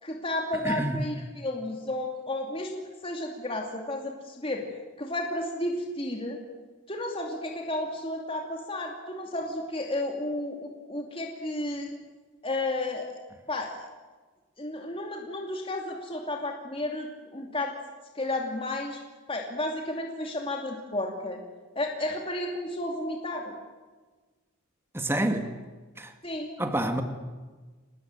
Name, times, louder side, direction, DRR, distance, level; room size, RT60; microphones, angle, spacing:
voice 1, 0.0-4.6 5.0-6.4 6.9-11.9 12.4-13.1 13.5-13.7 14.6-17.7 18.1-19.0 19.3-21.4 21.7-23.6 26.2-26.5, left 1 dB, 25° left, 1 dB, 2.7 m, -32 dB
voice 2, 0.6-1.0 24.9-25.5 26.0-26.1 26.6-27.0, right 1 dB, 10° right, 6 dB, 2.0 m, -28 dB
27.0 x 19.5 x 9.1 m, 1.3 s
head